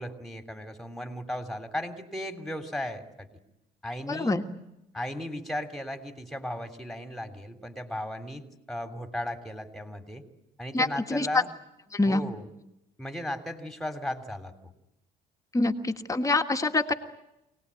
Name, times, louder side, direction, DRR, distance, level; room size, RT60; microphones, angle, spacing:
voice 1, 0.0-3.3 3.8-4.4 4.9-10.2 10.6-11.5 12.1-12.4 13.0-14.5, left 1 dB, ahead, 6 dB, 3.2 m, -36 dB
voice 2, 4.1-4.4 10.7-11.3 11.9-12.2 15.5-16.9, left 2 dB, 20° left, 4 dB, 1.6 m, -26 dB
26.5 x 19.0 x 9.8 m, 0.88 s
cardioid pair, 110°, 17 cm